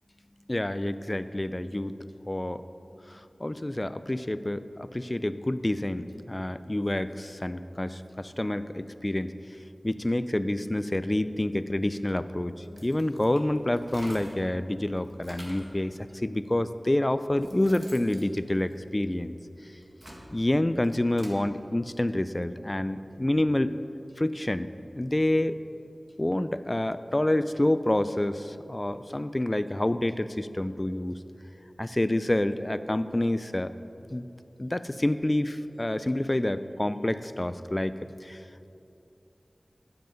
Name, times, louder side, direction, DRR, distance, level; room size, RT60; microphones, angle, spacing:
voice 1, 0.5-2.0 2.3-2.6 3.1-9.3 9.8-19.4 20.3-23.7 24.2-24.7 25.0-25.6 26.2-31.2 31.8-33.7 34.1-34.3 34.6-38.0 38.2-38.4, left 1 dB, 25° left, 13 dB, 0.3 m, -28 dB
sound 1, 12.6-14.5 14.9-15.8 16.6-16.7 17.1-19.3 19.7-21.4, equal, 30° right, 1.7 m, -48 dB
9.1 x 8.0 x 5.1 m, 2.8 s
wide cardioid pair, 65°, 0 cm